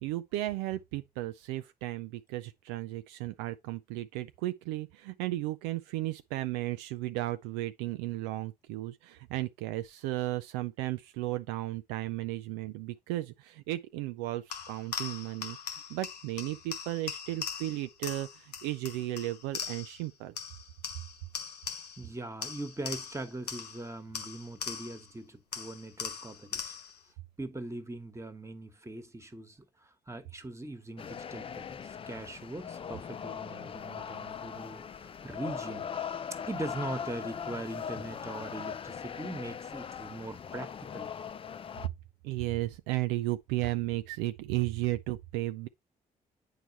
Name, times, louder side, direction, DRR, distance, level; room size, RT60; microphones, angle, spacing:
voice 1, 0.0-15.6 15.9-20.3 42.2-45.7, right 16 dB, 65° right, 0.4 m, -34 dB
sound 1, 14.5-20.1 20.4-22.1 22.4-25.1 25.5-27.0, left 6 dB, 85° left, 0.7 m, -40 dB
voice 2, 22.0-26.7 27.4-35.9 36.5-41.1, right 2 dB, 15° right, 1.3 m, -41 dB
sound 2, 31.0-41.9, left 7 dB, 30° left, 0.4 m, -40 dB
8.9 x 4.7 x 2.9 m
figure-of-eight pair, 40°, 20 cm